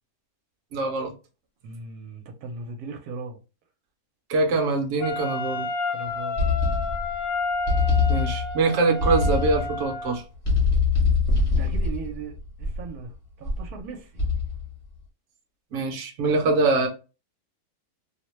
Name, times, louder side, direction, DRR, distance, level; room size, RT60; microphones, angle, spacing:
voice 1, 0.7-1.1 4.3-5.7 8.1-10.2 15.7-16.9, right 3 dB, 60° right, 1.0 m, -23 dB
voice 2, 1.6-3.4 5.9-6.4 11.5-14.2, right 4 dB, 85° right, 1.2 m, -38 dB
Wind instrument woodwind instrument, 5.0-10.2, left 3 dB, 65° left, 1.1 m, -30 dB
sound 1, 6.4-7.2 7.7-8.6 9.0-9.8 10.4-13.0 13.4-13.8 14.2-14.7, left 4 dB, 35° left, 1.1 m, -23 dB
2.7 x 2.1 x 3.0 m
omnidirectional pair, 1.6 m